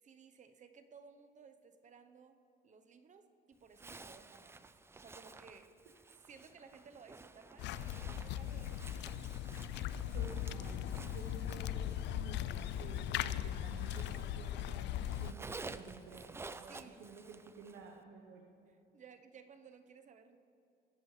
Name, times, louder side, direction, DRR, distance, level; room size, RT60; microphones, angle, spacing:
voice 1, 0.0-2.4 2.6-5.8 6.3-9.1 15.1-15.2 16.7-17.1 18.7-20.4, right 5 dB, 40° right, 9 dB, 0.9 m, -58 dB
Zipper (clothing), 3.7-14.6 14.9-17.9, right 3 dB, 15° right, 0.4 m, -53 dB
sound 1, 7.6-15.3, left 11 dB, 70° left, 0.4 m, -39 dB
voice 2, 10.1-14.9 15.1-18.5, right 4 dB, 85° right, 1 dB, 1.0 m, -52 dB
21.0 x 11.0 x 3.3 m, 2.7 s
cardioid pair, 115°, 19 cm